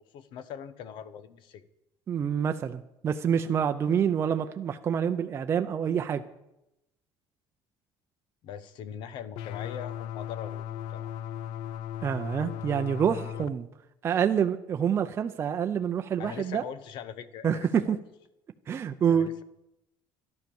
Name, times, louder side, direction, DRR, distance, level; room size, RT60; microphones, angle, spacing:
voice 1, 0.1-1.6 8.4-11.1 16.2-18.0 19.1-19.4, left 8 dB, 60° left, 14 dB, 1.0 m, -41 dB
voice 2, 2.1-6.2 12.0-13.7 14.0-16.6 17.4-18.0 18.7-19.3, right 8 dB, 30° right, 6 dB, 0.6 m, -27 dB
sound 1, 9.3-13.5, left 10 dB, 80° left, 0.5 m, -37 dB
12.0 x 12.0 x 7.1 m, 0.86 s
cardioid pair, 170°, 9 cm